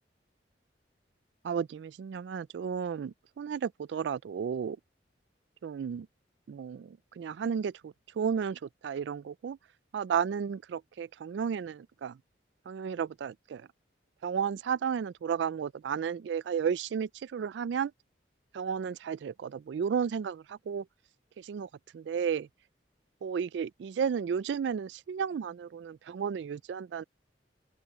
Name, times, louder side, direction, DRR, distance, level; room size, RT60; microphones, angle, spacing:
voice 1, 1.4-4.8 5.6-6.1 6.5-9.6 9.9-12.2 12.7-13.7 14.2-17.9 18.5-20.9 21.4-22.5 23.2-27.0, right 7 dB, 65° right, 0.3 m, -33 dB
open air
head